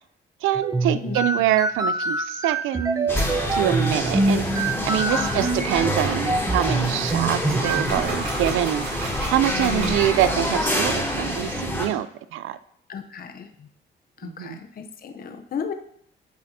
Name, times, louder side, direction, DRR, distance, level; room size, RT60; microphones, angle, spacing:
voice 1, 0.4-3.1 3.5-4.4 4.8-12.1 12.3-12.6 14.2-14.6, right 12 dB, 90° right, 14 dB, 0.5 m, -25 dB
sound 1, 0.5-8.0, right 2 dB, 20° right, 0.9 m, -25 dB
sound 2, 3.0-10.9, right 3 dB, 55° right, 2.3 m, -37 dB
sound 3, 3.1-11.9, left 1 dB, 10° left, 3.0 m, -27 dB
voice 2, 5.2-5.5 9.5-10.0 12.9-13.7 14.2-15.7, left 6 dB, 50° left, 6 dB, 0.8 m, -33 dB
9.2 x 7.6 x 2.8 m, 0.68 s
cardioid pair, 90°, 20 cm